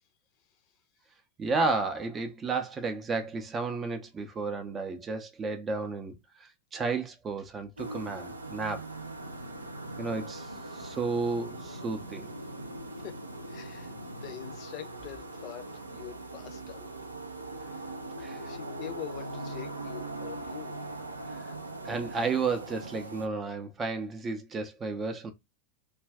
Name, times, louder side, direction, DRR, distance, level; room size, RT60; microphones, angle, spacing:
voice 1, 1.4-8.9 10.0-12.3 18.2-18.4 21.3-21.5 21.8-25.3, right 4 dB, 20° right, 0.5 m, -32 dB
sound 1, 7.8-23.3, right 2 dB, 80° right, 0.4 m, -41 dB
sound 2, 9.2-14.6, left 1 dB, 85° left, 0.4 m, -47 dB
voice 2, 13.5-16.9 17.6-17.9 18.4-20.8, left 12 dB, 40° left, 0.6 m, -44 dB
2.4 x 2.2 x 3.4 m
figure-of-eight pair, 90°, 0 cm